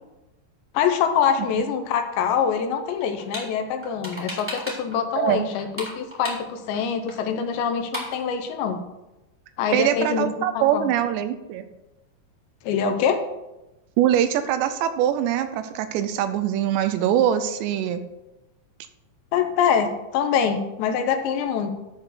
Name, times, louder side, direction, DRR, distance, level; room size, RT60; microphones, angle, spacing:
voice 1, 0.7-8.8 9.6-10.9 12.6-13.2 19.3-21.7, left 7 dB, 80° left, 6 dB, 3.0 m, -24 dB
sound 1, 3.0-3.5 3.8-5.0 5.2-6.8 7.1-7.2 7.4-7.5 7.7-8.2, equal, 5° right, 1.8 m, -34 dB
voice 2, 5.2-5.5 9.7-11.6 14.0-18.0, right 10 dB, 80° right, 10 dB, 2.8 m, -23 dB
11.5 x 4.4 x 6.6 m, 0.98 s
omnidirectional pair, 5.2 m